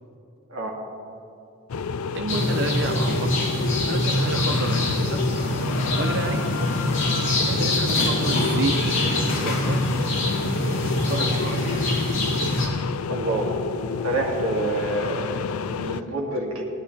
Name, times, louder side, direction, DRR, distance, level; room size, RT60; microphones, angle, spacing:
sound 1, 1.7-16.0, left 5 dB, 85° left, 0.4 m, -30 dB
voice 1, 2.1-3.4 3.8-5.3 5.9-6.6 7.4-9.8 11.1-11.6, right 3 dB, 55° right, 5 dB, 0.6 m, -30 dB
sound 2, 2.3-12.7, left 1 dB, 65° left, 2.6 m, -24 dB
voice 2, 13.1-13.5 14.0-16.6, right 2 dB, 75° right, -1 dB, 2.2 m, -27 dB
20.0 x 11.5 x 3.3 m, 2.7 s
head